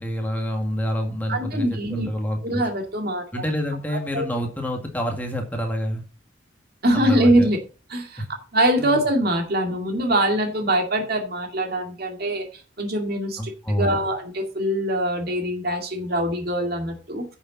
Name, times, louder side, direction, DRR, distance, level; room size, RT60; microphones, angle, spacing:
voice 1, 0.0-2.7 3.3-6.0 6.9-7.5 8.2-8.3 8.8-9.0 13.4-14.0, equal, 10° left, 2 dB, 1.9 m, -27 dB
voice 2, 1.3-2.1 2.4-3.4 4.1-4.3 6.8-7.6 7.9-8.2 8.5-13.4 13.7-17.3, right 1 dB, 55° right, 3 dB, 2.2 m, -23 dB
10.0 x 7.1 x 4.1 m, 0.36 s
head